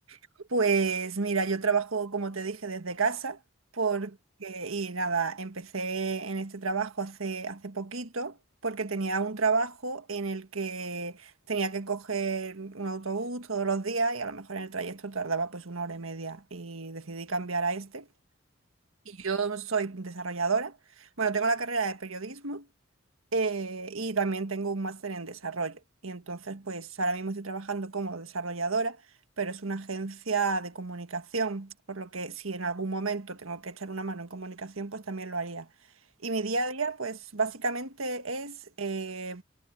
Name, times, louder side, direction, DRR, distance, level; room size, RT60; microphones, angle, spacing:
voice 1, 0.5-3.4 3.7-8.4 8.6-18.1 19.0-22.7 23.3-29.0 29.4-35.7 36.2-39.4, right 4 dB, 90° right, 1.7 m, -31 dB
head